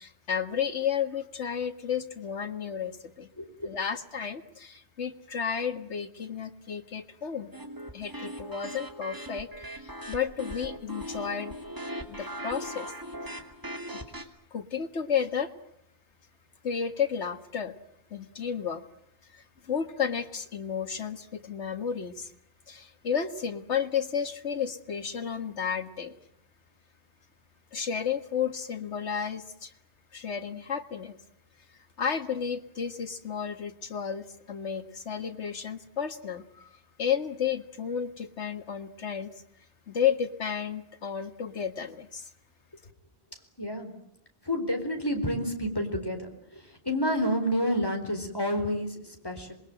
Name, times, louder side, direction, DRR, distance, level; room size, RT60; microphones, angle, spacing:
voice 1, 0.0-3.3 3.6-7.5 7.9-11.5 12.1-12.9 14.5-15.5 16.6-17.7 18.1-18.8 19.3-22.3 22.7-26.2 27.7-29.7 30.1-31.2 32.0-39.3 39.9-42.3, left 7 dB, 85° left, 9 dB, 2.0 m, -32 dB
voice 2, 3.4-3.8 43.3-44.0 44.4-49.5, equal, 20° left, 4 dB, 4.4 m, -30 dB
sound 1, 7.5-14.2, right 1 dB, 20° right, 2.7 m, -39 dB
27.0 x 21.5 x 8.9 m, 0.77 s
omnidirectional pair, 1.1 m